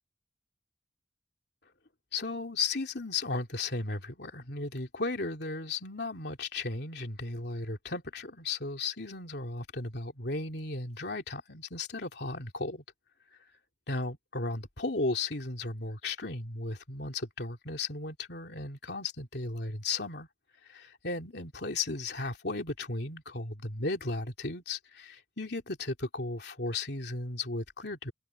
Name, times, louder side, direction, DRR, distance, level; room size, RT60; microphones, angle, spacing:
voice 1, 2.1-12.8 13.9-20.3 20.7-28.1, left 3 dB, 65° left, 3.1 m, -35 dB
head